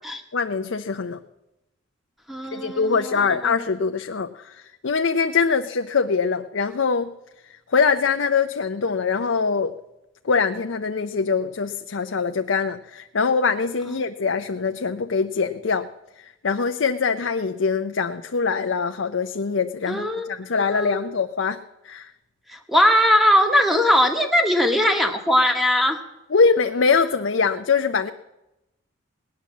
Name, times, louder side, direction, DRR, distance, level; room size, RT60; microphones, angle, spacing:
voice 1, 0.3-1.2 2.5-7.1 7.7-9.7 10.2-15.9 16.4-21.6 21.8-22.1 26.3-28.1, left 5 dB, 80° left, 6 dB, 0.6 m, -23 dB
voice 2, 2.3-3.6 13.9-14.0 19.9-21.1 22.5-26.0, equal, ahead, 4 dB, 1.5 m, -20 dB
18.5 x 10.5 x 7.3 m, 0.94 s
head